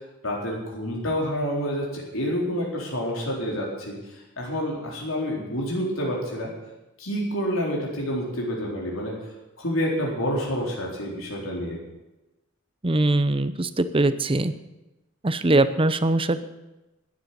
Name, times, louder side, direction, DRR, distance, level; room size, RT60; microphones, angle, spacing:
voice 1, 0.2-4.0 4.4-6.5 7.0-9.2 9.6-11.8, equal, 90° left, -3 dB, 4.1 m, -28 dB
voice 2, 12.8-14.5 15.2-16.4, right 2 dB, 25° right, 12 dB, 0.7 m, -22 dB
13.0 x 10.0 x 8.1 m, 1.0 s
head